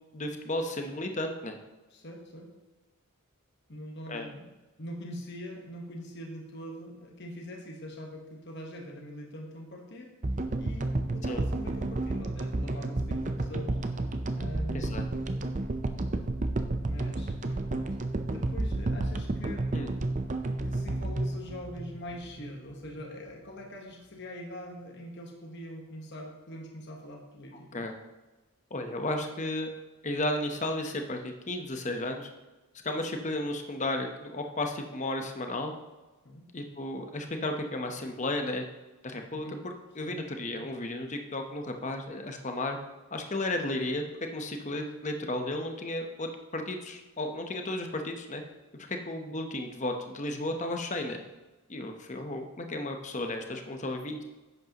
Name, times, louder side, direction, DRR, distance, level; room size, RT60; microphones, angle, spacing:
voice 1, 0.1-1.6 4.1-4.3 11.3-11.4 14.7-15.0 19.7-19.9 27.7-27.9 28.7-29.7 30.0-32.3 32.8-35.7 36.5-38.6 39.0-42.8 43.1-44.1 44.3-48.4 48.7-51.2 51.7-54.2, left 1 dB, 35° left, 4 dB, 0.9 m, -33 dB
voice 2, 1.9-2.5 3.7-4.5 4.8-10.1 10.6-13.8 14.3-15.1 16.8-18.0 18.3-19.9 20.6-27.9 36.2-36.4 39.3-39.6 40.0-40.7, equal, 50° left, 1 dB, 1.3 m, -43 dB
sound 1, 10.2-22.6, right 2 dB, 35° right, 0.5 m, -31 dB
11.0 x 8.3 x 3.0 m, 1.1 s
head